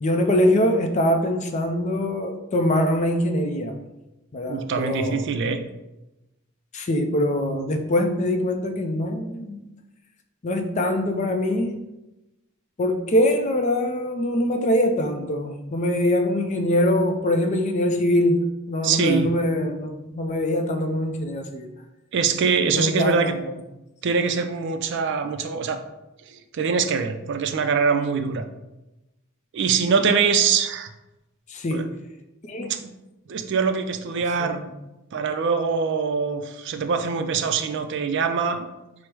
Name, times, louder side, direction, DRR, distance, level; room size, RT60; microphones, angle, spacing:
voice 1, 0.0-3.8 4.3-5.2 6.7-9.6 10.4-11.7 12.8-21.7 22.7-23.4 31.5-31.9 32.4-32.7 34.4-34.6, left 1 dB, 35° left, 5 dB, 0.4 m, -23 dB
voice 2, 4.5-5.6 18.8-19.3 22.1-23.3 24.0-25.8 26.3-28.5 29.5-30.9 31.7-31.8 32.6-32.9 33.3-34.6 35.1-38.7, right 5 dB, 55° right, 7 dB, 0.4 m, -23 dB
4.6 x 2.0 x 4.5 m, 0.97 s
head